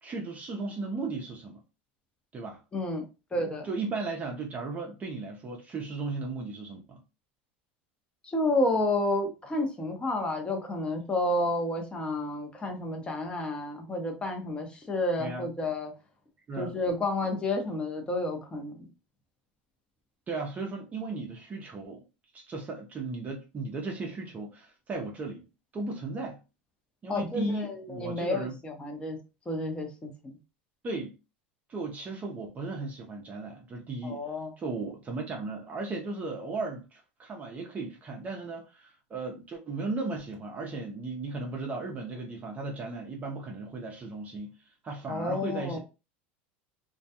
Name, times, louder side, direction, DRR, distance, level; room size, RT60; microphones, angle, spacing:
voice 1, 0.0-1.6 2.3-2.6 3.6-7.0 15.2-15.5 16.5-16.7 20.3-22.0 22.3-25.5 25.7-26.4 27.0-28.5 30.8-31.1 31.7-34.2 34.6-45.8, right 3 dB, 25° right, 0.6 m, -36 dB
voice 2, 2.7-3.7 8.2-15.9 16.6-18.9 27.1-29.2 29.5-30.1 34.0-34.5 45.1-45.8, left 2 dB, 15° left, 0.8 m, -30 dB
2.2 x 2.2 x 2.7 m
supercardioid pair, 110°, 6 cm